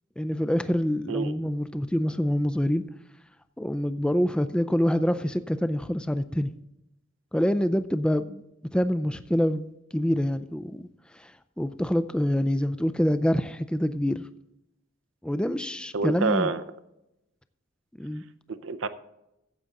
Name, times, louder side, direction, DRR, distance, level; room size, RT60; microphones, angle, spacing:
voice 1, 0.2-2.8 3.6-6.5 7.3-8.4 8.7-10.9 11.1-14.2 15.2-16.5 18.0-18.2, equal, 5° left, 0.4 m, -26 dB
voice 2, 15.9-16.6 18.5-18.9, right 4 dB, 70° right, 0.6 m, -27 dB
14.5 x 8.2 x 3.8 m
head